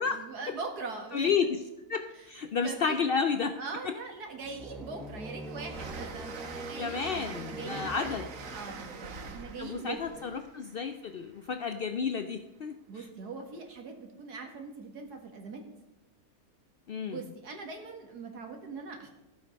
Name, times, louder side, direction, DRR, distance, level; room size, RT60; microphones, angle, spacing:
voice 1, 0.0-1.3 2.1-2.3 2.6-3.0 3.6-10.2 12.9-15.7 17.0-19.1, right 4 dB, 90° right, 3 dB, 2.3 m, -42 dB
voice 2, 1.1-1.5 1.9-3.5 3.9-4.0 6.8-8.3 9.6-12.7 16.9-17.2, left 6 dB, 75° left, 8 dB, 0.5 m, -31 dB
Train, 3.6-3.7 4.1-11.8, right 4 dB, 60° right, 1.4 m, -45 dB
sound 1, 4.4-9.1, right 1 dB, ahead, 0.4 m, -43 dB
15.0 x 8.0 x 5.2 m, 0.99 s
omnidirectional pair, 1.6 m